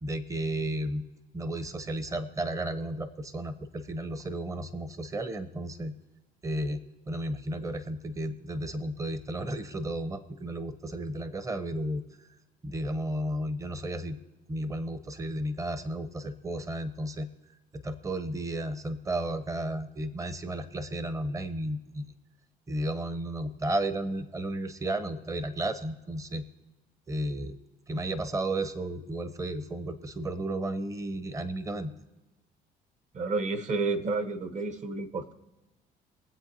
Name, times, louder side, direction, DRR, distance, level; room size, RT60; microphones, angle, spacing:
voice 1, 0.0-1.0 1.3-5.9 6.4-12.3 12.6-14.2 14.5-17.3 17.7-22.0 22.7-26.4 27.1-27.6 27.9-31.9, right 1 dB, 20° right, 11 dB, 0.8 m, -33 dB
voice 2, 33.1-35.3, right 3 dB, 45° right, 9 dB, 1.1 m, -30 dB
23.0 x 7.9 x 2.8 m, 1.1 s
cardioid pair, 110°, 17 cm